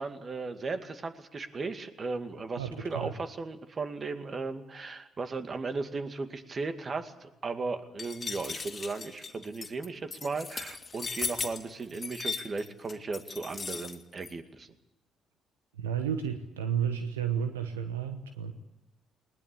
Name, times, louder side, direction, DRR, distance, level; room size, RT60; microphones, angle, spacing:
voice 1, 0.0-14.7, right 4 dB, 40° right, 8 dB, 2.2 m, -36 dB
voice 2, 2.6-3.1 15.8-18.5, right 8 dB, 90° right, 8 dB, 1.0 m, -32 dB
sound 1, 8.0-14.3, left 5 dB, 35° left, 2.2 m, -37 dB
20.5 x 20.0 x 8.6 m, 0.94 s
hypercardioid pair, 50°, 0 cm